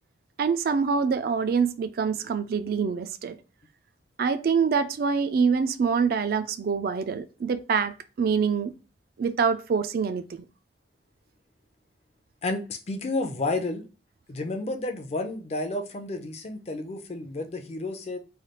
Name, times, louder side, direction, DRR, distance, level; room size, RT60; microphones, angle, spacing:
voice 1, 0.4-3.4 4.2-8.7 9.2-10.4, right 5 dB, 50° right, 0.3 m, -25 dB
voice 2, 12.4-13.8 14.3-18.2, left 2 dB, 35° left, 0.4 m, -31 dB
3.2 x 2.3 x 2.8 m
head